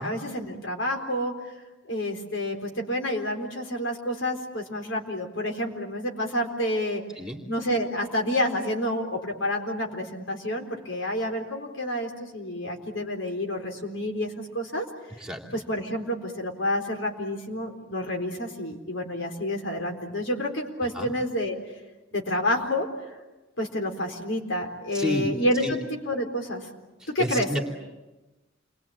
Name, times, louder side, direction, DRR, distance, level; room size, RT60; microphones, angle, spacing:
voice 1, 0.0-1.5 1.8-7.0 7.5-14.8 15.5-21.6 22.1-22.9 23.6-25.8 26.0-26.7 27.1-27.5, left 1 dB, 75° left, 3 dB, 4.1 m, -29 dB
voice 2, 24.9-25.3 25.6-25.8 27.0-27.6, left 1 dB, 5° right, 1 dB, 2.9 m, -30 dB
29.0 x 22.0 x 8.7 m, 1.1 s
head